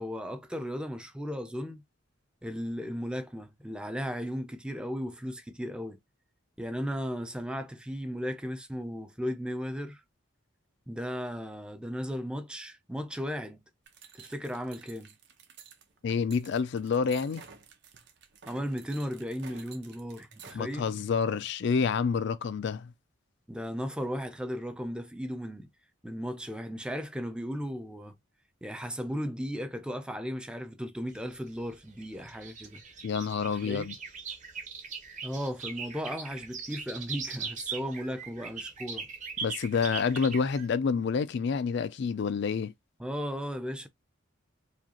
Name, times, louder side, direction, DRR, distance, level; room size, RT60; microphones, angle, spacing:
voice 1, 0.0-1.8 2.4-6.0 6.6-10.0 10.9-13.6 14.1-15.1 18.4-20.9 23.5-25.7 26.0-28.2 28.6-32.8 33.6-33.9 35.2-39.1 43.0-43.9, equal, 5° right, 0.4 m, -36 dB
sound 1, 13.9-20.6, right 6 dB, 60° right, 0.8 m, -52 dB
voice 2, 16.0-17.4 20.5-22.9 33.0-33.9 39.4-42.7, left 5 dB, 55° left, 0.4 m, -28 dB
sound 2, 31.1-40.7, right 5 dB, 40° right, 1.0 m, -40 dB
4.9 x 2.3 x 2.8 m
head